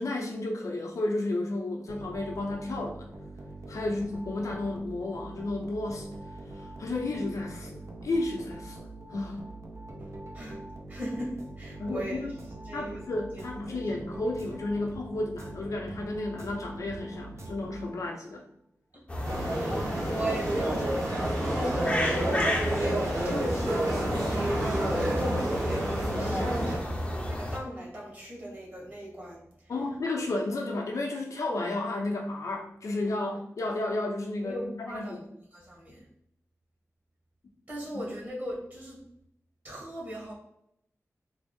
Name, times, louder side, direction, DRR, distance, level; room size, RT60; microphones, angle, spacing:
voice 1, 0.0-3.1 3.7-6.1 6.5-8.8 9.1-9.4 11.8-12.3 12.7-18.4 29.7-35.2, left 2 dB, 80° left, 1 dB, 0.6 m, -32 dB
sound 1, 1.9-18.3, right 2 dB, 60° right, 0.5 m, -44 dB
voice 2, 10.0-10.6 10.9-12.2 12.6-13.0 13.7-13.8 18.9-19.2 19.5-29.4 34.4-35.2 35.5-36.0 37.7-39.0 39.6-40.3, right 1 dB, 35° right, -3 dB, 1.4 m, -38 dB
sound 2, 19.1-27.6, left 1 dB, 20° left, 0.6 m, -33 dB
sound 3, 19.2-26.8, right 1 dB, 80° right, 1.5 m, -29 dB
3.5 x 2.0 x 3.5 m, 0.74 s
wide cardioid pair, 95°, 5 cm